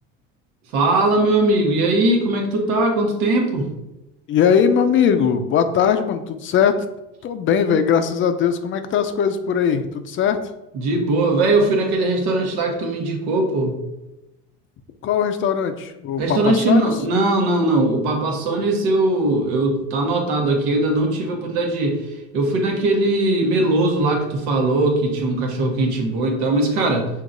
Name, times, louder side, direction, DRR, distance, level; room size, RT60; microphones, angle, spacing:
voice 1, 0.7-3.7 10.7-13.8 16.2-22.0 22.3-27.1, right 2 dB, 85° right, 1 dB, 1.2 m, -20 dB
voice 2, 4.3-6.8 7.2-10.4 15.0-17.0, left 7 dB, 45° left, 9 dB, 0.5 m, -20 dB
6.3 x 2.8 x 2.6 m, 0.95 s
cardioid pair, 115°, 29 cm